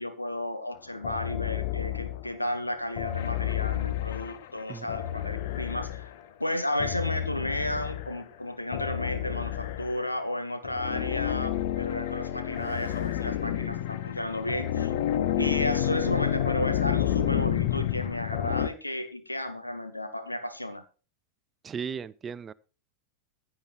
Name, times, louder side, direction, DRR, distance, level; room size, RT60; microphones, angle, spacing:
voice 1, 0.0-6.1 6.4-14.9 15.4-20.8, left 1 dB, 85° left, 1.6 m, -33 dB
sound 1, 1.0-2.4 3.0-6.2 6.8-8.2 8.7-10.1 10.6-18.7, left 12 dB, 55° left, 0.9 m, -30 dB
voice 2, 21.6-22.5, right 6 dB, 20° right, 0.6 m, -36 dB
16.0 x 9.9 x 3.3 m
figure-of-eight pair, 90°, 0 cm